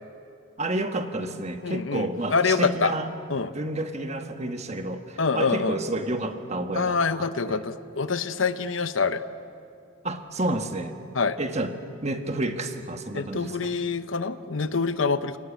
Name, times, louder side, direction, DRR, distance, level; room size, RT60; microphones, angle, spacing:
voice 1, 0.6-3.1 3.5-7.6 10.0-10.9 11.4-11.7 12.0-13.7, right 2 dB, 35° right, 6 dB, 1.5 m, -30 dB
voice 2, 1.6-2.9 3.3-3.5 5.2-5.8 6.7-9.3 11.1-11.4 13.1-15.4, left 4 dB, 75° left, 12 dB, 0.9 m, -26 dB
28.0 x 19.0 x 8.5 m, 2.5 s
head